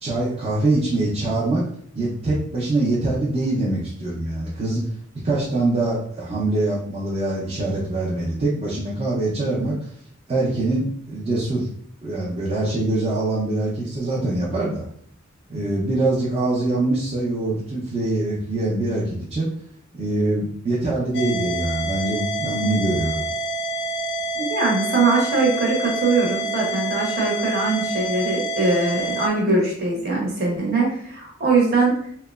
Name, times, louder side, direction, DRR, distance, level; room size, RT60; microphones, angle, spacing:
voice 1, 0.0-1.7 2.0-4.8 5.2-9.8 10.3-11.7 12.0-14.8 15.5-19.5 19.9-23.2, right 2 dB, 30° right, -7 dB, 0.5 m, -23 dB
sound 1, 21.1-29.3, right 1 dB, 55° left, 0.4 m, -27 dB
voice 2, 24.3-31.9, right 3 dB, 50° right, -2 dB, 0.8 m, -21 dB
2.9 x 2.1 x 2.3 m, 0.62 s
head